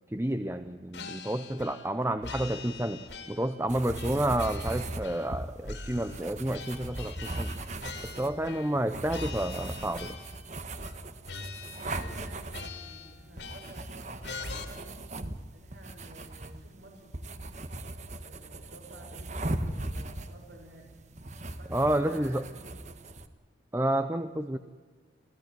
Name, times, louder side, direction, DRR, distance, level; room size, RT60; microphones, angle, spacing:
voice 1, 0.1-3.0 3.3-7.5 8.0-10.2 21.7-22.4 23.7-24.6, right 1 dB, 15° right, 9 dB, 0.7 m, -30 dB
sound 1, 0.9-1.9 2.2-3.6 3.9-5.4 5.6-8.8 9.1-10.5 10.8-11.0 11.3-12.2 12.5-13.9 14.2-14.6, left 3 dB, 70° left, 3.4 m, -43 dB
sound 2, 3.7-23.3, right 1 dB, 40° right, 1.4 m, -39 dB
voice 2, 11.8-15.0 15.5-17.4 18.2-21.0 21.6-22.9, right 1 dB, 65° right, 1 dB, 7.1 m, -52 dB
27.5 x 16.0 x 9.0 m, 1.5 s
head